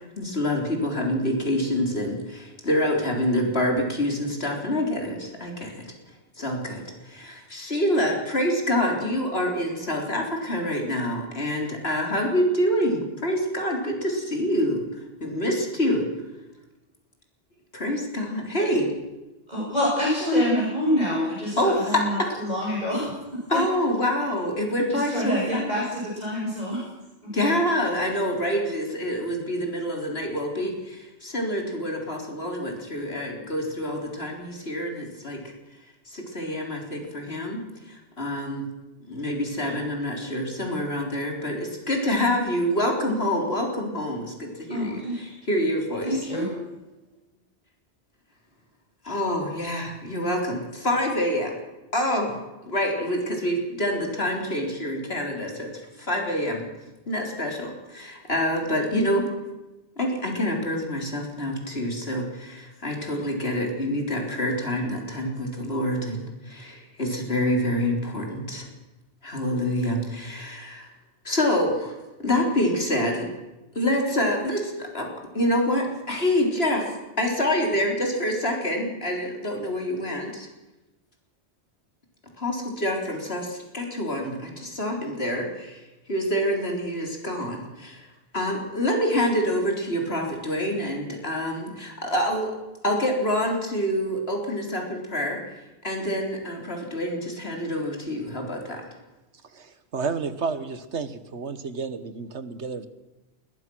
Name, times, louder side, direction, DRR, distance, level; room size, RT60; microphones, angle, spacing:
voice 1, 0.0-5.8 6.4-14.8 15.2-16.0 17.7-18.9 21.6-22.3 23.5-25.8 27.3-35.4 36.1-37.6 37.9-38.6 39.1-46.2 49.0-51.5 51.9-55.7 56.0-56.6 57.1-59.2 60.0-68.7 69.2-70.9 71.2-71.9 72.2-73.3 73.7-75.1 75.3-80.5 82.4-85.8 86.1-88.1 88.3-92.5 92.8-95.4 95.8-98.8, left 1 dB, 60° left, 2 dB, 4.0 m, -26 dB
voice 2, 19.5-23.1 23.5-23.6 24.9-26.9 39.6-39.7 44.7-45.3 46.0-46.5, left 1 dB, 40° right, -5 dB, 7.9 m, -26 dB
voice 3, 99.5-102.9, right 5 dB, 80° right, 12 dB, 1.7 m, -31 dB
20.5 x 20.0 x 6.2 m, 1.1 s
omnidirectional pair, 1.2 m